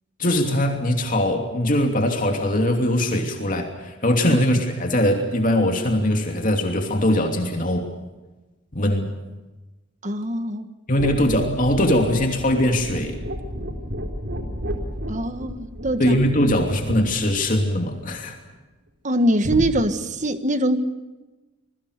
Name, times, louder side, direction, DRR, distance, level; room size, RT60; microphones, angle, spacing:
voice 1, 0.2-7.9 8.7-9.1 10.9-13.2 16.0-18.4, left 1 dB, 40° left, 3 dB, 2.9 m, -21 dB
voice 2, 10.0-10.7 15.1-16.2 19.0-20.8, right 1 dB, 35° right, 9 dB, 1.6 m, -23 dB
sound 1, 11.0-18.5 19.4-19.7, equal, 60° right, 4.0 m, -32 dB
27.0 x 22.0 x 6.6 m, 1.1 s
head